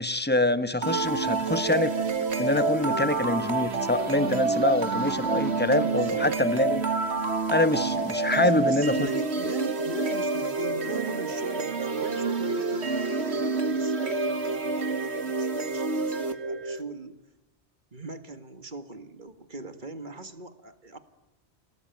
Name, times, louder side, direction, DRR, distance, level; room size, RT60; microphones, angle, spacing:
voice 1, 0.0-2.0 2.4-6.9 7.5-9.1, left 2 dB, 10° left, 12 dB, 1.1 m, -25 dB
sound 1, 0.8-16.8, right 3 dB, 80° right, 1.9 m, -28 dB
voice 2, 5.7-6.3 8.4-17.2 17.9-21.0, right 3 dB, 45° right, 10 dB, 2.0 m, -40 dB
29.0 x 18.5 x 9.3 m, 1.0 s
omnidirectional pair, 1.1 m